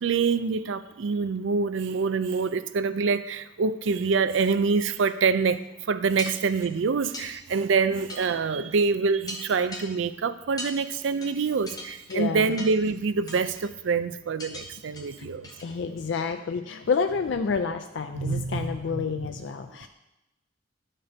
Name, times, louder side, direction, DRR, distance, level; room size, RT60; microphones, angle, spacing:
voice 1, 0.0-15.5 18.1-19.1, right 5 dB, 70° right, 12 dB, 0.4 m, -26 dB
sound 1, 5.4-5.5 6.2-6.7 7.1-7.3 8.1-8.3 8.7-8.8 9.3-9.9 10.6-10.7 11.2-11.3 11.7-12.2 12.6-12.8 13.3-13.7 14.4-14.7 15.0-15.1 15.4-15.7 16.1-16.2, left 1 dB, 20° left, 1.0 m, -39 dB
voice 2, 12.1-12.5 15.2-15.3 15.6-19.9, left 5 dB, 65° left, 7 dB, 0.4 m, -29 dB
10.5 x 4.4 x 5.0 m, 0.96 s
head